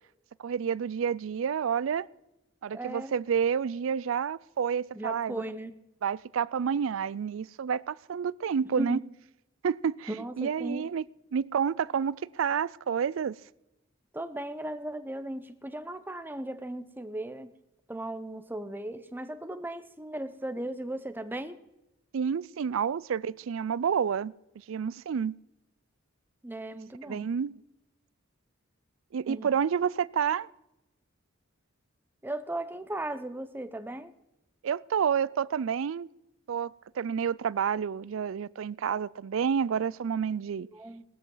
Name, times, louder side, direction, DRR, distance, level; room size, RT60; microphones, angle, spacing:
voice 1, 0.4-2.1 2.6-5.4 6.0-9.0 9.6-10.1 10.4-11.0 11.3-13.4 22.1-24.3 24.7-25.4 27.0-27.6 29.1-30.5 34.6-36.1 36.5-40.7, right 7 dB, 75° right, 0.4 m, -29 dB
voice 2, 2.7-3.1 4.9-5.8 8.8-9.0 10.1-10.9 14.1-17.5 17.9-21.6 26.4-27.3 29.3-29.5 32.2-34.1 40.7-41.0, right 1 dB, 10° right, 0.8 m, -37 dB
18.5 x 13.0 x 3.9 m
head